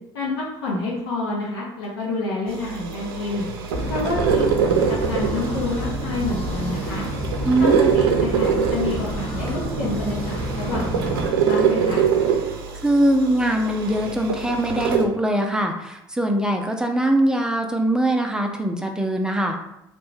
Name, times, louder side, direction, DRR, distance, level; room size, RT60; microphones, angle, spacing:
voice 1, 0.1-3.4 3.9-7.1 7.6-7.7 7.9-12.0, left 2 dB, 85° left, -5 dB, 0.6 m, -28 dB
sound 1, 2.5-15.0, right 7 dB, 85° right, 0.4 m, -24 dB
sound 2, 3.7-11.3, right 1 dB, 50° left, 1.1 m, -29 dB
voice 2, 7.4-8.0 12.8-19.6, right 1 dB, 5° right, 3 dB, 0.4 m, -22 dB
2.6 x 2.1 x 3.2 m, 0.86 s
hypercardioid pair, 65°, 12 cm